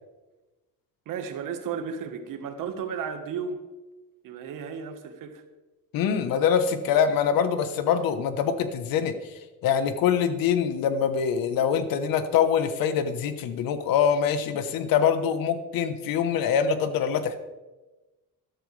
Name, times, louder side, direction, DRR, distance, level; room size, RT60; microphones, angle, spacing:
voice 1, 1.0-3.6 4.2-5.4, right 6 dB, 65° right, 1.5 m, -34 dB
voice 2, 5.9-9.1 9.6-17.4, left 7 dB, 75° left, 1.2 m, -24 dB
14.0 x 12.5 x 3.4 m
cardioid pair, 175°, 34 cm